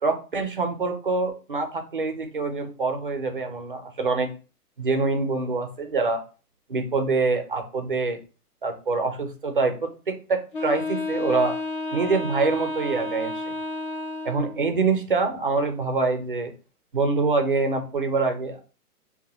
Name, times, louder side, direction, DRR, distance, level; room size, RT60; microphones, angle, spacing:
voice 1, 0.0-4.3 4.8-6.2 6.7-8.2 8.6-11.6 11.9-13.5 14.2-16.5 16.9-18.6, right 3 dB, 35° right, 6 dB, 0.4 m, -25 dB
Wind instrument woodwind instrument, 10.5-14.6, left 2 dB, 35° left, 0.4 m, -31 dB
5.2 x 2.2 x 2.8 m, 0.35 s
hypercardioid pair, 160°, 47 cm